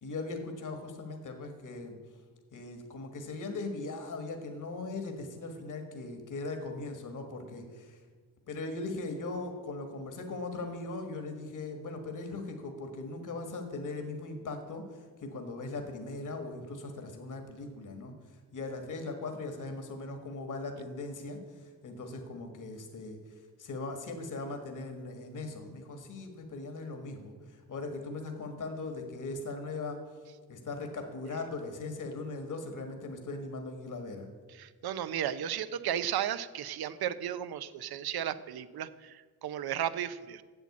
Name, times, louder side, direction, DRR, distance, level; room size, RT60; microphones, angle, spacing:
voice 1, 0.0-2.0 2.5-8.0 8.5-14.8 15.2-18.1 18.5-21.4 21.8-23.2 23.6-30.0 30.5-34.3, left 3 dB, 55° left, 5 dB, 1.7 m, -39 dB
voice 2, 34.5-40.4, right 10 dB, 75° right, 14 dB, 0.7 m, -34 dB
8.0 x 7.5 x 8.4 m, 1.5 s
cardioid pair, 85°, 38 cm